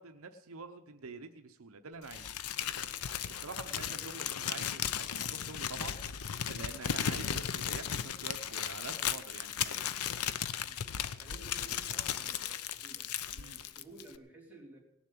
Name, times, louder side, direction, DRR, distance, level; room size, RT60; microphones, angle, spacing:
voice 1, 0.0-2.3 3.3-9.8 13.4-13.6, right 4 dB, 70° right, 7 dB, 0.8 m, -47 dB
Crumpling crinkling, 2.1-14.2, left 9 dB, 90° left, 0.7 m, -36 dB
voice 2, 3.6-4.4 10.6-10.8 11.2-14.8, right 2 dB, 5° right, -5 dB, 4.1 m, -55 dB
18.0 x 7.3 x 8.4 m, 0.87 s
head